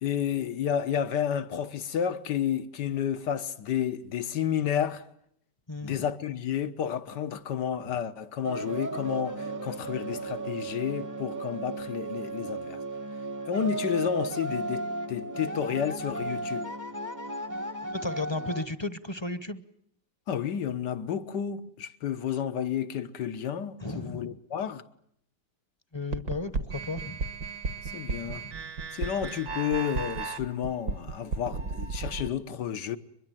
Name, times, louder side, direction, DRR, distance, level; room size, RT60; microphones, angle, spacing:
voice 1, 0.0-5.1 5.8-12.8 13.5-16.7 20.3-24.8 27.8-28.5 28.9-33.0, left 9 dB, 80° left, 1.8 m, -31 dB
voice 2, 5.7-6.1 17.9-19.6 23.8-24.4 25.9-27.2 28.2-28.7, left 2 dB, 20° left, 0.8 m, -35 dB
sound 1, 8.4-18.7, right 2 dB, 15° right, 0.8 m, -35 dB
sound 2, 26.1-32.3, right 4 dB, 70° right, 2.0 m, -34 dB
23.0 x 22.5 x 9.1 m
omnidirectional pair, 1.8 m